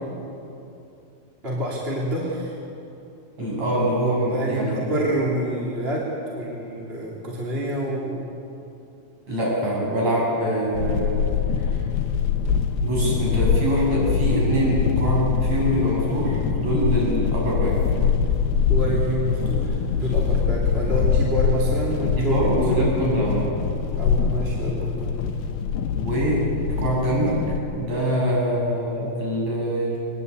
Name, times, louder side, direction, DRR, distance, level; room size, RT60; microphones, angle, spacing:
voice 1, 1.4-2.5 4.3-8.3 18.7-22.3 24.0-25.2, right 1 dB, 15° right, -4 dB, 3.1 m, -27 dB
voice 2, 3.4-4.9 9.3-11.2 11.6-11.8 12.8-17.8 22.2-23.5 26.0-27.4 27.8-30.0, right 1 dB, 45° right, -4 dB, 8.5 m, -24 dB
sound 1, 10.7-27.6, left 6 dB, 85° left, 3.0 m, -24 dB
23.0 x 20.5 x 8.5 m, 2.8 s
omnidirectional pair, 4.5 m